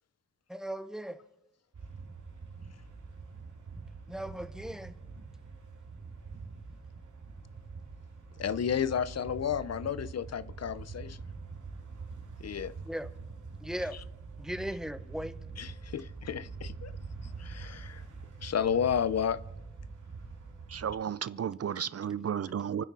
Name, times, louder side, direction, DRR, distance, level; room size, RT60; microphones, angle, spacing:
voice 1, 0.5-1.2 4.1-4.9 12.9-13.1 13.6-14.0 14.4-15.4, equal, ahead, 0.6 m, -37 dB
sound 1, 1.7-20.9, right 4 dB, 70° right, 2.4 m, -45 dB
voice 2, 8.4-11.2 12.4-12.7 15.6-16.9 17.4-18.0 18.4-19.4, left 8 dB, 55° left, 0.5 m, -32 dB
voice 3, 20.7-22.8, right 8 dB, 50° right, 0.4 m, -33 dB
29.0 x 9.8 x 4.1 m
wide cardioid pair, 135°, 32 cm